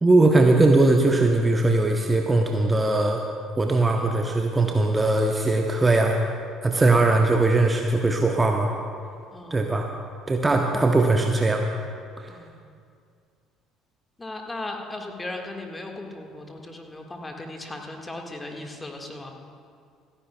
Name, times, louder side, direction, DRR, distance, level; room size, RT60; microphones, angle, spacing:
voice 1, 0.0-3.2 3.6-6.2 6.6-8.7 9.5-9.9 10.3-11.6 12.2-12.3, right 2 dB, 20° right, 3 dB, 0.8 m, -20 dB
voice 2, 4.0-4.3 4.6-4.9 6.7-6.9 9.3-9.8 10.5-10.7 12.3-12.6 14.2-19.3, left 2 dB, 15° left, 2 dB, 1.7 m, -37 dB
28.0 x 9.8 x 2.3 m, 2.3 s
figure-of-eight pair, 55°, 0 cm